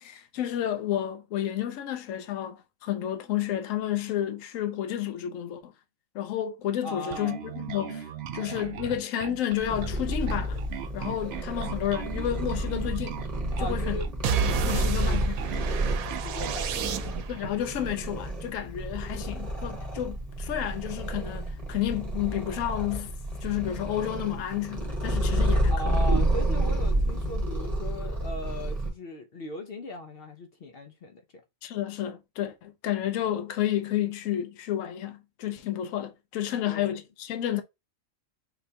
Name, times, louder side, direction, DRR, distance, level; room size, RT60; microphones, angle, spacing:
voice 1, 0.0-5.7 6.1-8.1 8.3-10.6 10.9-13.2 13.6-14.0 14.3-15.4 17.3-23.1 23.4-25.9 31.6-37.6, left 11 dB, 75° left, 1.0 m, -31 dB
voice 2, 6.8-7.4 13.6-14.1 14.4-15.2 15.5-17.2 25.7-31.2 36.6-37.0, left 1 dB, 55° left, 0.7 m, -39 dB
Bass guitar, 7.1-16.7, right 9 dB, 65° right, 0.7 m, -38 dB
Purr, 9.6-28.9, right 1 dB, 30° right, 1.5 m, -30 dB
sound 1, 14.2-17.5, right 8 dB, 90° right, 1.1 m, -30 dB
5.9 x 3.3 x 2.8 m
omnidirectional pair, 1.4 m